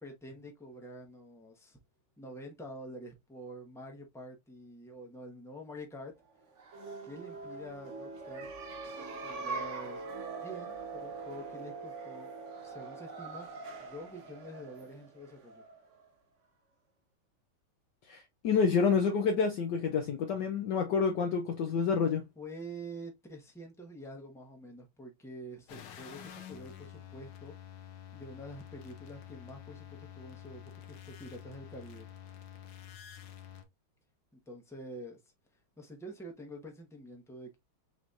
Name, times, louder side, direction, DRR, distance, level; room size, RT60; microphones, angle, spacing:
voice 1, 0.0-1.8 2.2-6.1 7.0-8.5 9.2-10.0 10.4-12.4 12.6-13.5 13.8-15.6 22.4-27.9 28.1-32.1 34.5-35.2 35.8-37.6, right 1 dB, ahead, 0.7 m, -47 dB
sound 1, 6.5-16.0, right 4 dB, 50° right, 0.9 m, -43 dB
voice 2, 18.1-22.2, left 5 dB, 70° left, 1.1 m, -28 dB
sound 2, 25.7-33.6, left 11 dB, 90° left, 1.7 m, -49 dB
6.0 x 3.0 x 2.5 m
omnidirectional pair, 2.3 m